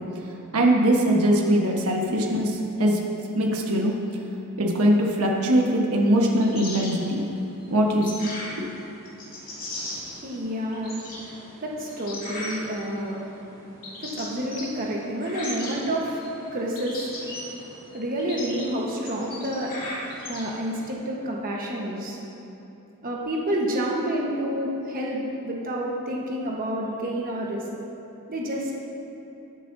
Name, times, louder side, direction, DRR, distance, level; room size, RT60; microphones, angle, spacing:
voice 1, 0.5-3.0 3.3-4.0 4.6-7.2 7.7-8.3 8.6-8.7, right 1 dB, 90° right, 0 dB, 1.2 m, -21 dB
sound 1, 6.2-20.9, left 1 dB, 40° left, 2.0 m, -39 dB
voice 2, 9.6-19.8 20.3-22.2 23.0-27.6 28.3-28.8, equal, 40° right, -2 dB, 1.2 m, -29 dB
19.5 x 7.5 x 2.7 m, 2.9 s
head